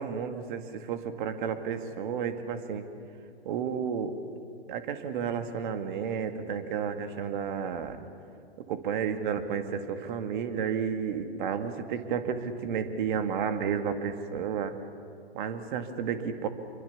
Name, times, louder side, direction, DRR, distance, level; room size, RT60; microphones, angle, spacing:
voice 1, 0.0-2.8 3.4-4.2 4.7-8.0 8.6-14.7 15.3-16.5, right 7 dB, 50° right, 8 dB, 2.3 m, -32 dB
27.0 x 23.5 x 7.3 m, 2.4 s
hypercardioid pair, 120°, 32 cm